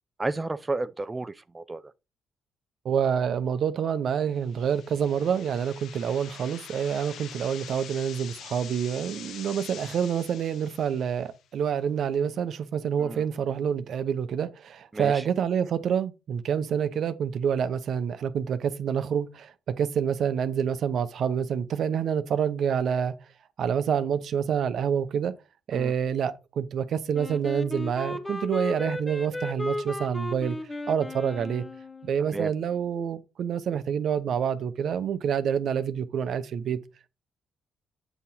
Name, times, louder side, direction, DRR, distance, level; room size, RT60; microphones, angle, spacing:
voice 1, 0.2-1.8 13.0-13.2 14.9-15.2 25.7-25.9 32.3-32.5, right 2 dB, 20° right, 0.3 m, -32 dB
voice 2, 2.8-23.1 23.6-25.3 25.7-30.6 30.9-31.6 32.0-36.8, right 8 dB, 65° right, 0.6 m, -27 dB
sound 1, 4.4-11.4, left 9 dB, 75° left, 0.7 m, -45 dB
Wind instrument woodwind instrument, 27.1-32.2, left 1 dB, 15° left, 0.7 m, -35 dB
8.1 x 2.9 x 5.5 m
cardioid pair, 90°, 0 cm